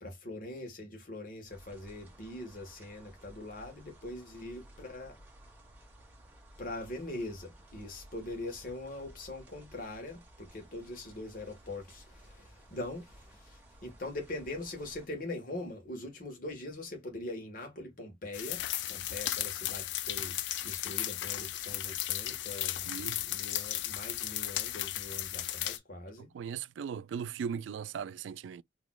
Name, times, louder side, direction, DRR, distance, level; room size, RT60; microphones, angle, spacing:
voice 1, 0.0-5.2 6.6-18.6 18.9-20.4 20.6-26.3, left 2 dB, 50° left, 1.4 m, -42 dB
sound 1, 1.5-15.1, right 1 dB, 10° right, 1.4 m, -56 dB
sound 2, 18.3-25.8, left 13 dB, 75° left, 0.4 m, -35 dB
voice 2, 22.8-23.2 26.2-28.6, right 7 dB, 85° right, 0.3 m, -38 dB
4.0 x 2.9 x 2.3 m
head